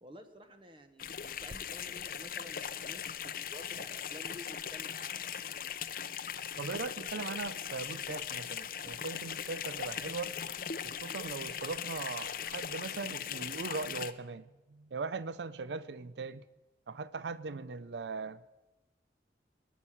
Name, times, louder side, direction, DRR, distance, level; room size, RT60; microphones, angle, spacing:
voice 1, 0.0-5.4, left 1 dB, 30° right, 0.9 m, -52 dB
sound 1, 1.0-14.1, left 8 dB, 50° left, 0.6 m, -39 dB
voice 2, 6.6-10.4 10.8-14.4 14.7-16.4 16.9-18.4, right 4 dB, 75° right, 0.5 m, -40 dB
19.5 x 7.3 x 9.8 m
head